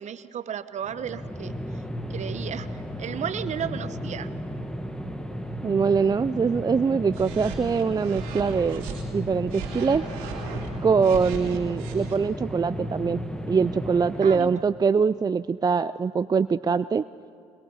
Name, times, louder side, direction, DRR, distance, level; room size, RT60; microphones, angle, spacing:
voice 1, 0.0-1.5 2.1-4.4 11.4-11.6 14.2-14.6, right 9 dB, 55° right, 14 dB, 1.0 m, -34 dB
sound 1, 0.8-14.7, equal, 5° left, 1.8 m, -34 dB
voice 2, 5.6-8.9 9.1-10.0 10.8-17.0, right 5 dB, 25° right, 15 dB, 0.4 m, -23 dB
sound 2, 7.1-9.0 9.5-12.2, right 5 dB, 85° right, 2.4 m, -38 dB
22.5 x 21.5 x 5.5 m, 2.4 s
hypercardioid pair, 60°, 14 cm